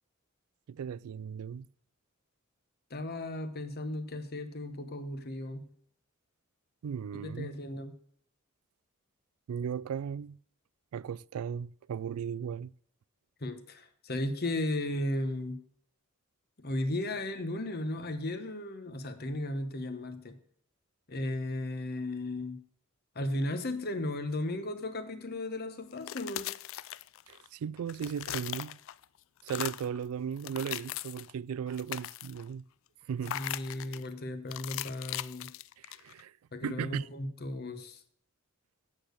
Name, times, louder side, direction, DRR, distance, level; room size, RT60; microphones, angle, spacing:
voice 1, 0.7-1.7 6.8-7.5 9.5-10.4 10.9-12.7 27.3-28.8 29.4-32.6 33.1-33.4 35.8-36.3 36.6-37.1, right 7 dB, 80° right, 0.3 m, -36 dB
voice 2, 2.9-5.7 7.1-8.0 13.4-15.6 16.6-20.4 21.1-22.6 23.1-26.5 33.3-35.5 36.5-38.0, left 1 dB, 45° left, 1.1 m, -35 dB
sound 1, 25.9-27.5 27.8-29.0 29.4-30.0 30.4-31.3 31.7-32.5 33.2-34.1 34.5-36.2, left 13 dB, 65° left, 0.3 m, -39 dB
8.7 x 6.6 x 6.6 m
head